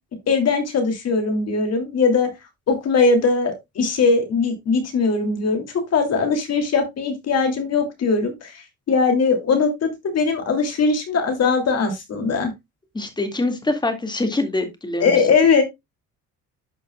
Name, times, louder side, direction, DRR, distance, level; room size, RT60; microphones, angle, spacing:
voice 1, 0.3-2.3 2.7-12.5 15.0-15.6, left 4 dB, 50° left, 5 dB, 2.8 m, -20 dB
voice 2, 12.9-15.1, left 2 dB, 15° left, 7 dB, 2.0 m, -24 dB
11.5 x 5.5 x 2.3 m, 0.19 s
cardioid pair, 110°, 32 cm